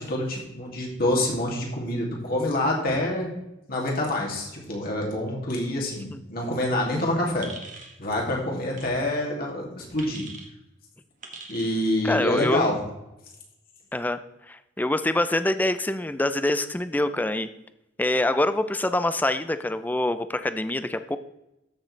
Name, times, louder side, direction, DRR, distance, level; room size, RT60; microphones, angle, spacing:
voice 1, 0.0-3.3 3.7-7.5 8.0-10.2 11.5-12.8, left 1 dB, 50° left, -2 dB, 2.6 m, -26 dB
sound 1, 7.4-8.0 8.7-8.9 10.0-10.5 11.2-11.8, right 4 dB, 40° right, 1.5 m, -42 dB
voice 2, 12.0-12.6 13.9-14.2 14.5-17.5 18.0-21.2, left 1 dB, 10° left, 11 dB, 0.4 m, -25 dB
13.5 x 6.5 x 3.3 m, 0.90 s
head